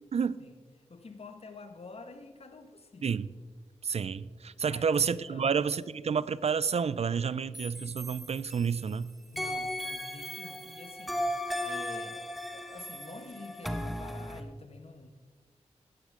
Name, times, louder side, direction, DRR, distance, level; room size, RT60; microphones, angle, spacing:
voice 1, 0.9-3.1 4.5-5.0 5.3-5.5 9.3-15.1, left 3 dB, 55° left, 8 dB, 1.4 m, -48 dB
voice 2, 3.8-9.1, right 6 dB, 60° right, 18 dB, 0.5 m, -30 dB
sound 1, 7.5-8.9 9.4-14.4, left 1 dB, ahead, 1.4 m, -36 dB
17.0 x 11.5 x 3.8 m, 1.4 s
cardioid pair, 55°, 12 cm